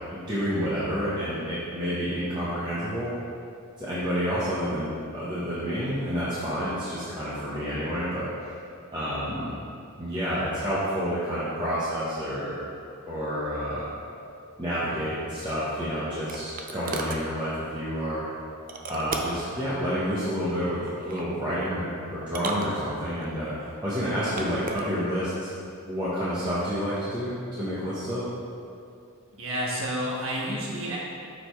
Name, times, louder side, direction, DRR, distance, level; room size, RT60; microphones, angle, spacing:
voice 1, 0.1-3.1 3.8-8.3 8.9-9.6 10.0-12.6 13.1-13.9 14.6-18.3 18.9-25.5 25.8-28.3, equal, 20° right, -10 dB, 1.0 m, -29 dB
sound 1, 15.5-17.3 18.7-19.5 20.9-21.3 22.2-23.3 24.1-24.9, right 3 dB, 40° right, 0.5 m, -36 dB
voice 2, 29.4-31.0, equal, 60° right, -4 dB, 1.3 m, -30 dB
6.4 x 5.1 x 4.6 m, 2.5 s
head